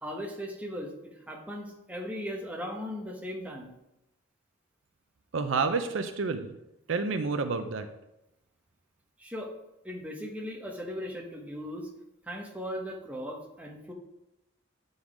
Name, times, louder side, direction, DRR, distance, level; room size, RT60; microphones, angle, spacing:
voice 1, 0.0-0.9 1.3-3.7 9.2-9.5 9.8-11.9 12.2-13.9, equal, 5° right, 0 dB, 1.0 m, -38 dB
voice 2, 5.3-6.6 6.9-7.9, right 4 dB, 65° right, 8 dB, 0.5 m, -29 dB
8.7 x 4.0 x 4.8 m, 0.90 s
head